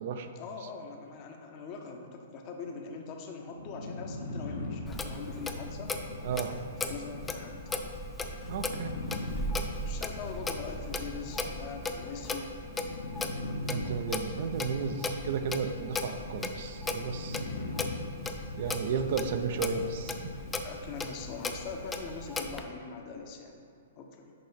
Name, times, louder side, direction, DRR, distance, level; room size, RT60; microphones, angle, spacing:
voice 1, 0.3-6.0 6.8-7.6 9.9-12.5 17.4-17.8 20.6-23.6 24.0-24.3, left 4 dB, 35° left, 3 dB, 0.8 m, -42 dB
sound 1, 3.5-20.8, left 2 dB, 80° left, 0.9 m, -41 dB
Clock, 4.9-22.6, left 2 dB, 10° left, 0.4 m, -37 dB
voice 2, 6.2-6.5 8.5-9.0 13.7-17.4 18.6-20.1, right 6 dB, 55° right, 7 dB, 0.5 m, -33 dB
sound 2, 12.5-22.4, right 1 dB, 85° right, 1.4 m, -51 dB
6.6 x 5.0 x 4.1 m, 2.4 s
hypercardioid pair, 130°, 0 cm